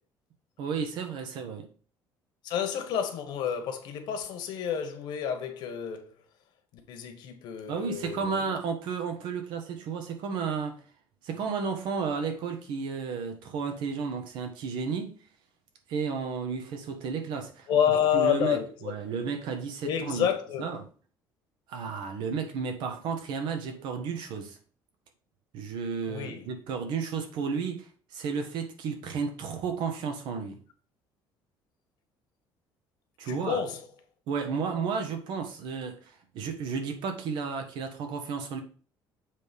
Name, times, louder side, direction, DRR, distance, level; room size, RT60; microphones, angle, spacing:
voice 1, 0.6-1.7 7.7-10.8 11.2-15.2 15.9-17.7 18.1-20.3 20.6-20.8 21.7-24.6 25.5-30.6 33.2-33.6 34.3-38.6, right 5 dB, 65° right, 1.4 m, -33 dB
voice 2, 2.4-6.1 6.9-8.5 17.7-19.2 19.8-20.8 26.1-26.4 33.3-33.8, left 8 dB, 60° left, 1.5 m, -29 dB
7.4 x 3.6 x 5.3 m
cardioid pair, 170°, 8 cm